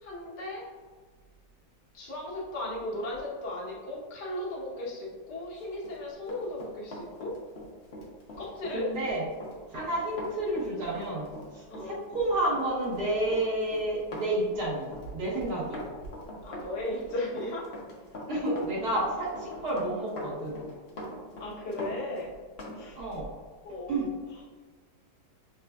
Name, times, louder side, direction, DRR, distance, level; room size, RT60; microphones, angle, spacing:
voice 1, 0.0-0.6 1.9-7.3 8.4-8.9 11.7-12.0 16.4-17.6 18.7-19.1 21.4-22.3 22.7-23.0 23.6-24.0, left 1 dB, 75° left, -6 dB, 1.7 m, -36 dB
Run, 5.7-22.8 23.1-23.3, equal, 50° left, 0.9 m, -43 dB
voice 2, 8.7-9.2 9.7-15.8 18.3-20.6 22.9-23.3 23.9-24.1, right 1 dB, 65° right, -6 dB, 1.7 m, -30 dB
6.6 x 2.5 x 2.3 m, 1.5 s
omnidirectional pair, 1.8 m